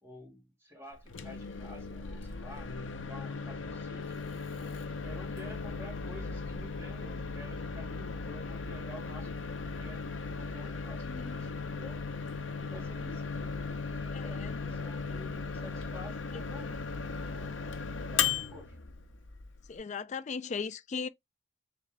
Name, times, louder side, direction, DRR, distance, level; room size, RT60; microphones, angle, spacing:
voice 1, 0.0-2.7 3.1-4.2 4.9-12.0 12.6-16.8 17.3-17.6 18.1-18.7, left 1 dB, 15° right, 2.4 m, -50 dB
Microwave oven, 1.0-19.8, left 5 dB, 80° left, 0.7 m, -37 dB
voice 2, 10.6-11.4 14.1-14.6 16.3-16.4 19.7-21.1, left 5 dB, 40° left, 0.4 m, -38 dB
3.7 x 3.4 x 3.2 m
head